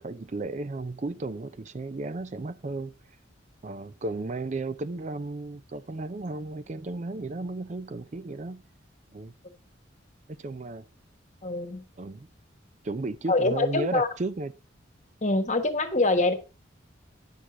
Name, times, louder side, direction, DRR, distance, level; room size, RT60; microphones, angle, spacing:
voice 1, 0.0-2.9 3.6-8.6 9.1-9.3 10.4-10.8 12.0-12.3 12.8-14.5, right 2 dB, 40° right, 0.4 m, -34 dB
voice 2, 11.4-11.8 13.3-14.1 15.2-16.3, left 2 dB, 40° left, 1.3 m, -24 dB
10.0 x 6.4 x 4.9 m
head